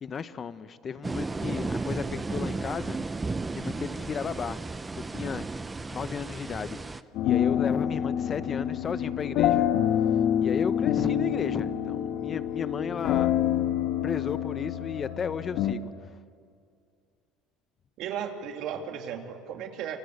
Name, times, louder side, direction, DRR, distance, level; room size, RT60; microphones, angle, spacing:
voice 1, 0.0-3.0 3.5-4.6 5.1-6.8 7.2-9.7 10.4-13.8 14.0-16.2, left 6 dB, 35° left, 1.0 m, -34 dB
sound 1, 1.0-7.0, right 3 dB, 15° right, 0.7 m, -34 dB
sound 2, 7.1-15.7, left 10 dB, 70° left, 1.4 m, -27 dB
voice 2, 18.0-20.0, right 8 dB, 65° right, 2.7 m, -35 dB
27.5 x 24.5 x 8.3 m
supercardioid pair, 110°, 0 cm